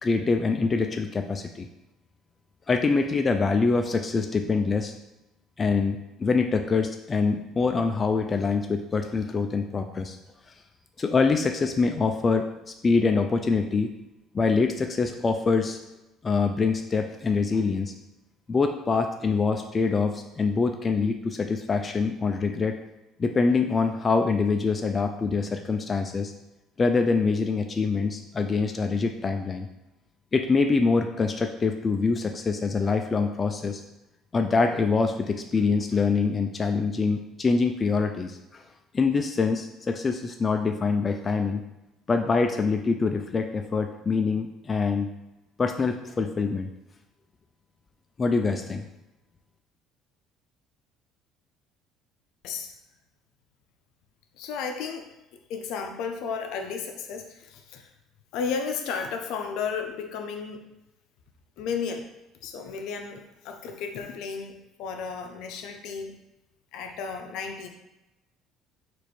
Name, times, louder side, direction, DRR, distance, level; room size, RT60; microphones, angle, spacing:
voice 1, 0.0-1.7 2.7-4.9 5.6-10.2 11.0-12.5 12.8-13.9 14.3-15.8 16.2-17.9 18.5-22.8 23.2-26.3 26.8-29.7 30.3-33.8 34.3-38.6 38.9-41.6 42.1-45.1 45.6-46.7 48.2-48.8, left 4 dB, 25° left, 5 dB, 0.3 m, -25 dB
voice 2, 54.4-55.1 55.5-57.9 58.3-60.6 61.6-62.1 62.4-64.5 64.8-66.2 66.7-67.7, left 6 dB, 70° left, 5 dB, 0.6 m, -33 dB
4.6 x 2.6 x 4.2 m, 0.95 s
cardioid pair, 105°, 0 cm